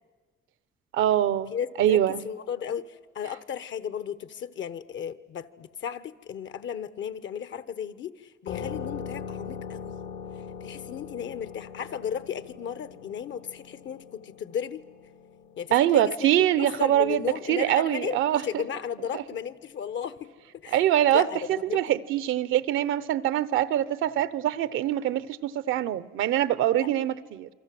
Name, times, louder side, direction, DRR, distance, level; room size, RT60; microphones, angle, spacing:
voice 1, 0.9-1.5 1.8-2.2 15.7-18.6 19.1-19.2 20.7-21.3 21.7-27.5, right 12 dB, 90° right, 0.9 m, -24 dB
voice 2, 1.5-9.9 10.6-14.8 15.6-16.3 16.6-20.3 20.6-20.8 21.1-21.4 21.7-21.8 26.8-26.9, left 8 dB, 70° left, 1.1 m, -35 dB
sound 1, 8.5-17.7, left 7 dB, 90° left, 3.1 m, -41 dB
28.0 x 24.0 x 7.7 m
cardioid pair, 90°, 20 cm